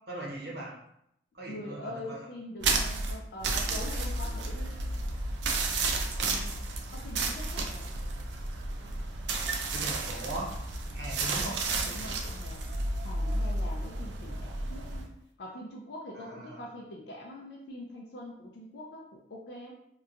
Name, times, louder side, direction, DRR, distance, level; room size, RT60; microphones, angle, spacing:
voice 1, 0.1-0.7 1.3-2.2 5.6-5.8 6.1-6.5 9.7-10.5 10.9-11.6 16.1-16.7, right 1 dB, 70° right, -4 dB, 0.8 m, -39 dB
voice 2, 1.5-4.8 6.3-6.5 6.9-8.0 11.8-12.7 13.0-15.1 15.4-19.7, left 1 dB, 75° left, -2 dB, 0.4 m, -43 dB
sound 1, 2.6-15.1, right 3 dB, 85° right, 0.4 m, -32 dB
2.8 x 2.2 x 2.4 m, 0.77 s
head